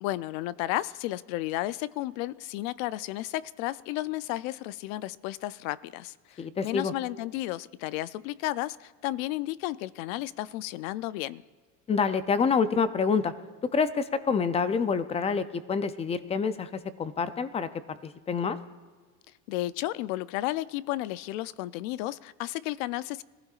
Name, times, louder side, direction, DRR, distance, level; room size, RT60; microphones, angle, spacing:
voice 1, 0.0-11.4 19.5-23.2, left 16 dB, 85° left, 0.6 m, -33 dB
voice 2, 6.4-6.9 11.9-13.3 13.7-16.7 17.0-18.6, left 5 dB, 15° left, 0.4 m, -27 dB
22.0 x 15.5 x 2.4 m
cardioid pair, 150°, 39 cm